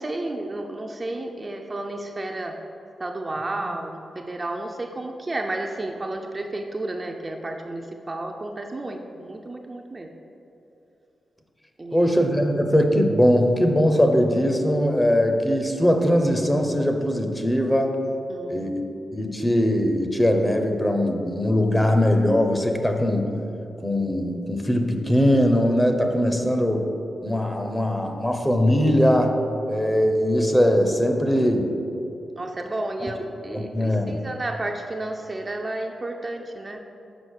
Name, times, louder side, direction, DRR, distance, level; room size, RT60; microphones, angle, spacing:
voice 1, 0.0-2.6 3.0-10.1 11.8-12.1 18.3-18.6 32.4-36.8, right 2 dB, 30° right, 3 dB, 0.5 m, -32 dB
voice 2, 11.9-18.0 18.5-18.8 19.1-23.4 23.8-26.9 27.2-29.4 29.7-31.7 33.0-33.1 33.5-34.2, equal, 10° left, 4 dB, 0.7 m, -21 dB
6.2 x 5.1 x 6.4 m, 2.9 s
cardioid pair, 95°, 0 cm